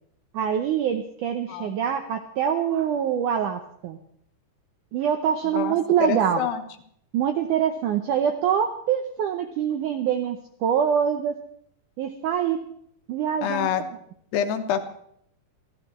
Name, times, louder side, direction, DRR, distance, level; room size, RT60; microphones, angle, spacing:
voice 1, 0.3-4.0 4.9-6.5 7.1-11.4 12.0-12.6 13.1-13.7, right 8 dB, 85° right, 6 dB, 1.8 m, -24 dB
voice 2, 5.5-6.6 13.4-13.8 14.3-14.8, left 9 dB, 80° left, 7 dB, 3.2 m, -27 dB
24.5 x 14.5 x 3.1 m, 0.68 s
omnidirectional pair, 4.7 m